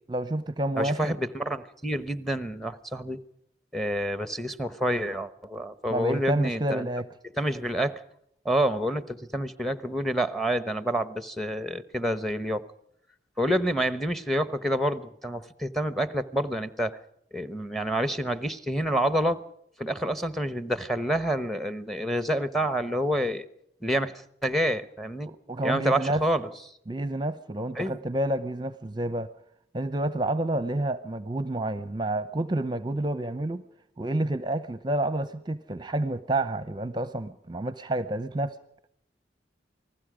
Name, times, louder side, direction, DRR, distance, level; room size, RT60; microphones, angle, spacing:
voice 1, 0.1-1.2 5.9-7.1 25.2-26.2 26.9-29.3 29.7-33.6 34.0-38.6, right 1 dB, 25° right, 13 dB, 0.7 m, -29 dB
voice 2, 0.8-3.2 3.7-6.9 7.4-8.0 8.4-12.6 13.4-17.0 17.3-19.4 19.8-23.5 23.8-25.3 25.6-26.5 27.7-28.0, equal, ahead, 13 dB, 1.0 m, -28 dB
28.5 x 20.0 x 5.0 m, 0.73 s
head